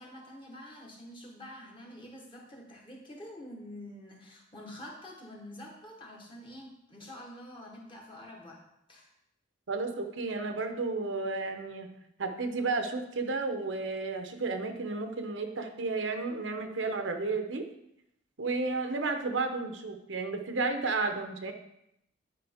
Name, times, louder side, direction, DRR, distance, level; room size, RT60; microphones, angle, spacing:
voice 1, 0.0-8.6 8.9-9.1, left 1 dB, 25° left, -1 dB, 1.3 m, -47 dB
voice 2, 9.7-11.9 12.2-17.7 18.4-21.5, right 3 dB, 90° right, 6 dB, 0.9 m, -32 dB
10.0 x 4.6 x 3.5 m, 0.79 s
head